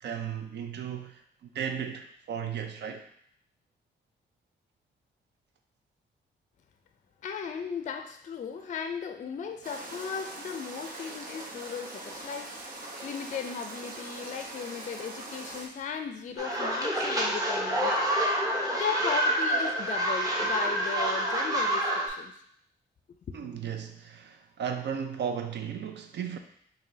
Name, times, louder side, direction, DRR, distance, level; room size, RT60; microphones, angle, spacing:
voice 1, 0.0-3.0 23.3-26.4, right 8 dB, 70° right, 6 dB, 0.5 m, -35 dB
voice 2, 7.2-12.5 12.8-18.0 18.7-22.3, left 6 dB, 40° left, 6 dB, 0.4 m, -36 dB
sound 1, 9.6-15.7, right 2 dB, 50° right, 0.9 m, -42 dB
sound 2, 16.4-22.1, right 1 dB, 20° right, 0.8 m, -27 dB
4.8 x 2.7 x 2.7 m, 0.65 s
cardioid pair, 80°, 19 cm